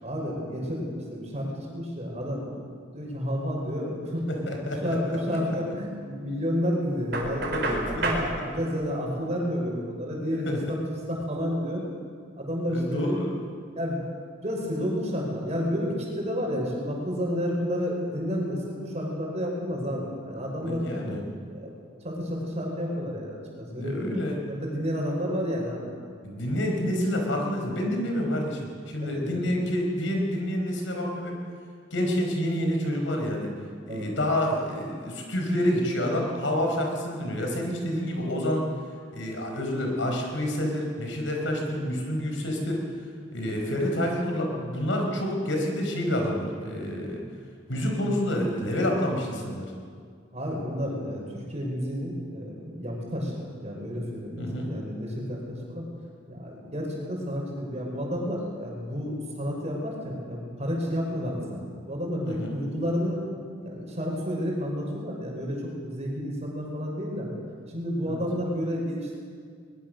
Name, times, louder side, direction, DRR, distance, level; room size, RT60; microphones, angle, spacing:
voice 1, 0.0-4.2 4.8-7.6 7.9-11.8 12.4-13.4 13.8-14.0 14.4-20.9 21.5-21.7 22.0-25.9 29.0-29.5 33.9-34.1 50.3-53.3 53.6-55.9 56.3-61.6 61.9-63.2 63.6-67.3 67.7-69.2, equal, 35° right, -1 dB, 5.9 m, -31 dB
voice 2, 4.3-5.4 7.5-8.3 10.4-10.6 12.7-13.4 20.6-21.2 23.7-24.4 26.2-31.3 31.9-33.5 33.9-38.6 39.1-42.8 43.3-47.2 47.7-49.7 54.4-54.7 62.2-62.5 68.1-68.2, equal, 75° left, 1 dB, 4.9 m, -28 dB
Knock, 7.1-8.3, right 2 dB, 55° right, 4.1 m, -29 dB
22.0 x 21.0 x 6.7 m, 2.1 s
head